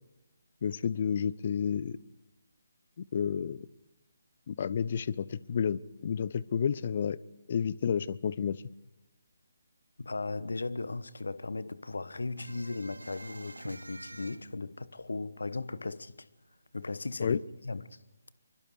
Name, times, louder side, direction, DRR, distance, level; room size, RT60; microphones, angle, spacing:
voice 1, 0.6-2.0 3.0-3.6 4.5-7.2 7.5-8.6 17.2-17.4, left 7 dB, 40° left, 0.7 m, -30 dB
voice 2, 10.0-16.3 16.7-17.4 17.6-18.0, left 3 dB, 65° left, 1.2 m, -37 dB
sound 1, 12.4-15.7 16.0-16.1 16.4-17.4, right 2 dB, 75° right, 1.4 m, -47 dB
26.5 x 24.0 x 4.8 m
figure-of-eight pair, 145°, 0 cm